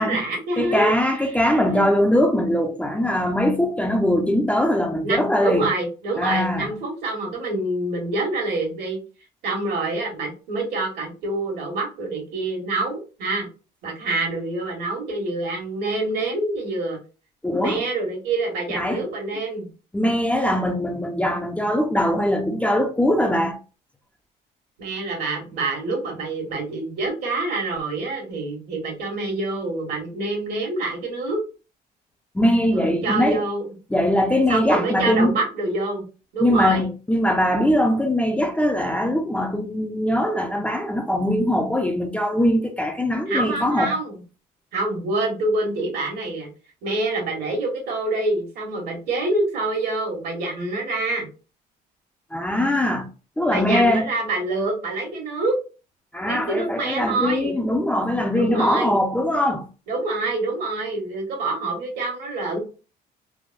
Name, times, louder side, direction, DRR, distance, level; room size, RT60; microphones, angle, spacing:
voice 1, 0.0-0.9 1.6-1.9 5.0-9.0 9.4-13.5 13.8-17.0 17.6-19.7 24.8-31.4 32.7-33.7 34.5-36.0 36.3-36.9 43.3-44.2 44.7-46.5 46.8-51.3 53.5-55.6 56.3-57.5 58.3-59.0 59.9-62.6, right 2 dB, 70° right, 1.4 m, -26 dB
voice 2, 0.6-5.7 6.2-6.7 17.4-17.8 18.7-19.0 19.9-23.6 32.3-33.4 33.9-35.3 36.4-44.0 52.3-53.1 53.4-54.1 56.1-59.7, left 1 dB, 10° left, 0.4 m, -21 dB
3.3 x 2.1 x 2.5 m
cardioid pair, 110°, 17 cm